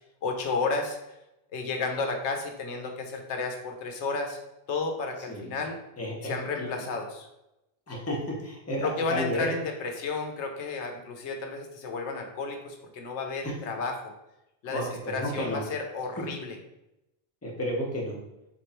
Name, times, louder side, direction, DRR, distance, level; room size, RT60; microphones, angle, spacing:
voice 1, 0.2-1.0 1.5-4.4 4.7-5.8 6.2-7.3 8.8-14.1 14.6-16.6, left 4 dB, 90° left, 3 dB, 1.0 m, -32 dB
voice 2, 6.0-6.7 7.9-9.5 14.6-15.6 16.2-16.3 17.4-18.2, equal, 15° left, -3 dB, 0.9 m, -32 dB
3.8 x 3.2 x 4.3 m, 0.89 s
omnidirectional pair, 1.1 m